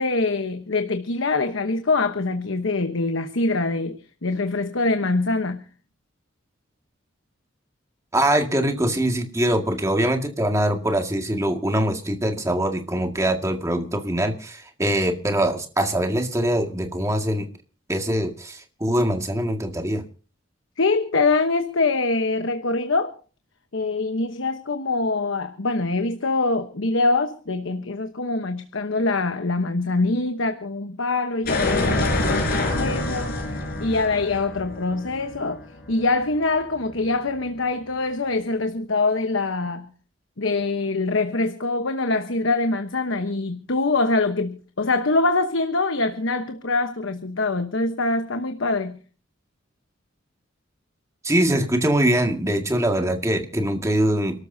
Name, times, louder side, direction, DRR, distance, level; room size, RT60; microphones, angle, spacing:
voice 1, 0.0-5.6 20.8-23.2 23.7-35.6 35.9-39.9 40.4-49.0, left 3 dB, 80° left, 1.1 m, -24 dB
voice 2, 8.1-17.5 17.9-20.0 51.2-54.4, right 1 dB, 15° right, 1.9 m, -23 dB
sound 1, 31.5-36.2, left 2 dB, 50° left, 5.0 m, -26 dB
29.0 x 13.0 x 2.8 m
head